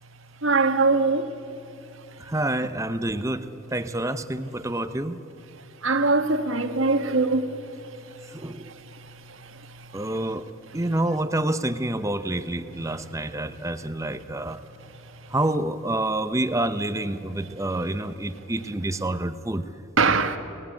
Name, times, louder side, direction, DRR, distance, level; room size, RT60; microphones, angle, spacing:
voice 1, 0.4-1.3 1.9-2.2 5.8-10.2 10.7-10.8 12.9-13.0 14.8-15.3 20.0-20.4, right 3 dB, 65° right, 8 dB, 1.5 m, -25 dB
voice 2, 2.2-5.2 8.3-8.7 9.9-14.6 15.3-19.6, right 1 dB, 15° right, 11 dB, 0.8 m, -28 dB
29.0 x 18.5 x 8.5 m, 2.8 s
head